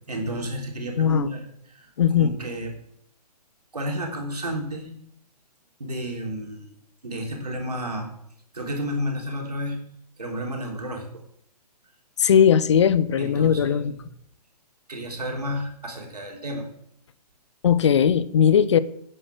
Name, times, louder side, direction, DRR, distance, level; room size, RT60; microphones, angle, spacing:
voice 1, 0.1-2.7 3.7-4.9 5.8-6.8 7.0-8.1 8.5-9.8 10.2-11.2 13.2-13.9 14.9-16.7, equal, 70° right, 3.5 m, -31 dB
voice 2, 1.0-1.3 2.0-2.3 12.2-13.9 17.6-18.8, left 8 dB, 45° left, 0.7 m, -18 dB
10.5 x 9.1 x 6.2 m
figure-of-eight pair, 130°, 21 cm